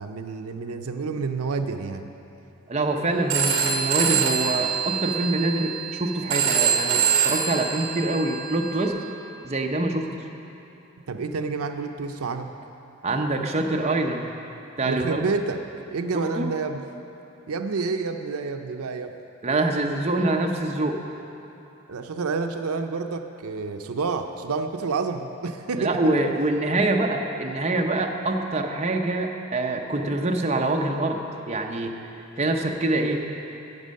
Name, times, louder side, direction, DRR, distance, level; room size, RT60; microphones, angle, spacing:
voice 1, 0.0-2.1 11.1-12.5 14.8-15.6 15.9-16.8 17.5-19.1 21.9-26.0, right 4 dB, 80° right, 7 dB, 0.5 m, -29 dB
voice 2, 2.7-8.9 9.4-10.1 13.0-14.3 14.8-15.3 16.1-16.5 19.4-21.0 25.8-31.9 32.4-33.2, right 2 dB, 30° right, 1 dB, 0.7 m, -25 dB
Telephone, 3.3-8.9, right 7 dB, 55° right, 1.3 m, -25 dB
11.0 x 8.3 x 6.4 m, 2.9 s
head